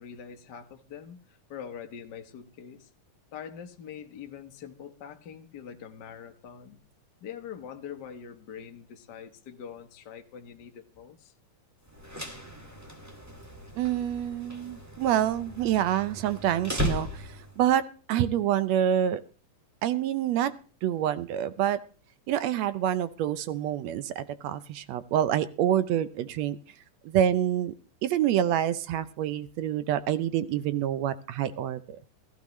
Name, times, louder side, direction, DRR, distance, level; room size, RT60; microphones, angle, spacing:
voice 1, 0.0-2.9 3.3-6.8 7.2-11.3, left 8 dB, 55° left, 5 dB, 1.2 m, -44 dB
sound 1, 11.9-17.6, left 1 dB, 5° right, 1.3 m, -37 dB
voice 2, 13.8-17.8 18.1-19.2 19.8-20.5 20.8-21.8 22.3-26.6 27.0-27.7 28.0-32.0, right 10 dB, 75° right, 14 dB, 1.7 m, -27 dB
15.5 x 14.0 x 3.1 m, 0.37 s
omnidirectional pair, 3.5 m